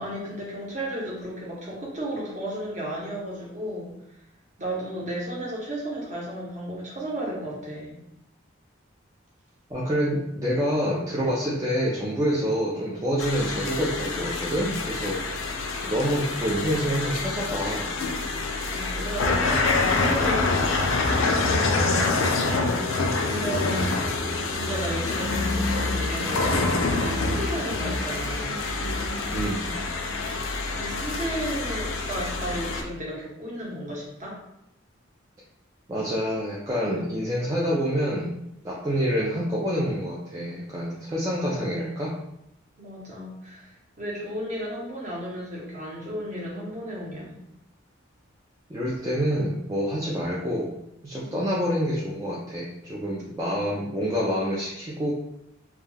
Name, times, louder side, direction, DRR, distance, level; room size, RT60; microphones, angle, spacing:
voice 1, 0.0-3.9 4.6-8.0 18.7-23.9 24.2-28.6 30.7-34.4 42.8-47.4 51.2-51.6, right 1 dB, 35° right, -4 dB, 0.7 m, -34 dB
voice 2, 9.7-15.3 15.8-17.9 29.3-29.8 35.9-38.4 38.6-42.2 48.7-50.8 51.0-55.1, equal, 15° right, -6 dB, 0.3 m, -27 dB
sound 1, 13.2-32.8, left 3 dB, 90° left, 0.4 m, -26 dB
2.3 x 2.2 x 3.2 m, 0.81 s
head